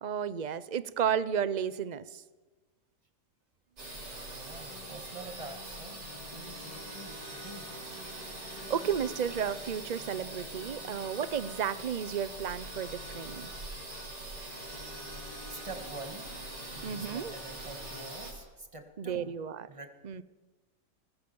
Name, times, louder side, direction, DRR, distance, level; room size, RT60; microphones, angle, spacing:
voice 1, 0.0-2.2 8.7-13.5 16.8-17.3 19.0-19.7 20.0-20.2, right 8 dB, 50° right, 16 dB, 0.5 m, -33 dB
sound 1, 3.8-18.3, right 2 dB, 85° right, 4.7 m, -43 dB
voice 2, 4.2-6.0 6.3-7.8 10.8-10.9 15.3-16.3 16.7-19.3 19.7-19.9, right 2 dB, 20° right, 5 dB, 2.1 m, -46 dB
sound 2, 4.7-18.2, left 7 dB, 70° left, 2.0 m, -53 dB
21.0 x 20.0 x 7.1 m, 1.2 s
omnidirectional pair, 1.8 m